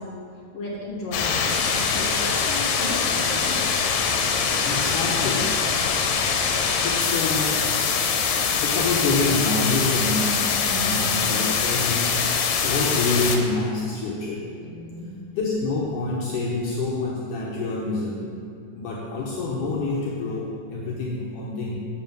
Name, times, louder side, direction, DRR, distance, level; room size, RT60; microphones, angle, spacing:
voice 1, 0.5-3.6 10.6-11.0 14.6-15.1, left 1 dB, 45° left, -5 dB, 3.0 m, -34 dB
sound 1, 1.1-13.4, left 6 dB, 85° left, 2.7 m, -23 dB
voice 2, 4.6-5.5 6.8-7.6 8.6-14.4 15.3-18.4 18.7-21.8, left 3 dB, 70° left, -5 dB, 2.6 m, -27 dB
11.5 x 5.6 x 7.6 m, 2.3 s
omnidirectional pair, 3.9 m